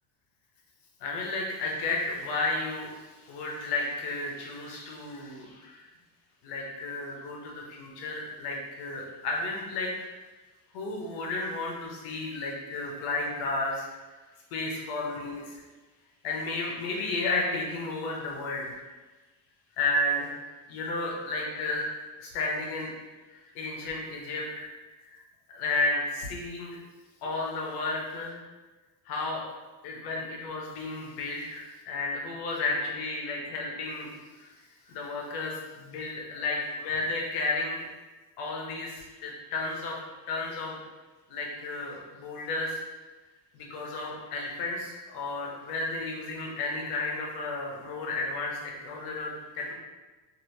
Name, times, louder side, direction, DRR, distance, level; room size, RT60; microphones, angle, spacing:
voice 1, 1.0-2.9 3.3-5.9 6.4-10.1 10.7-14.2 14.5-15.6 16.2-18.8 19.8-20.4 20.7-21.9 22.2-23.0 23.3-24.7 25.0-25.2 25.5-26.8 27.2-28.4 29.1-29.4 29.8-34.5 34.9-37.9 38.4-40.0 40.3-40.8 41.3-42.8 43.5-49.7, left 2 dB, 55° left, -2 dB, 0.8 m, -32 dB
3.1 x 2.7 x 2.7 m, 1.2 s
cardioid pair, 180°, 45 cm